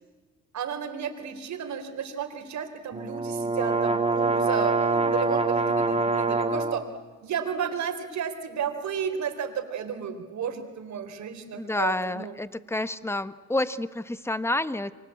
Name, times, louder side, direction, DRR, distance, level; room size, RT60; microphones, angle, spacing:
voice 1, 0.5-6.8 7.2-12.3, right 7 dB, 70° right, 7 dB, 4.0 m, -33 dB
sound 1, 2.9-6.8, right 3 dB, 20° right, 2.1 m, -25 dB
voice 2, 11.5-14.9, left 2 dB, 10° left, 14 dB, 1.2 m, -29 dB
29.0 x 24.0 x 8.5 m, 1.3 s
cardioid pair, 90°, 30 cm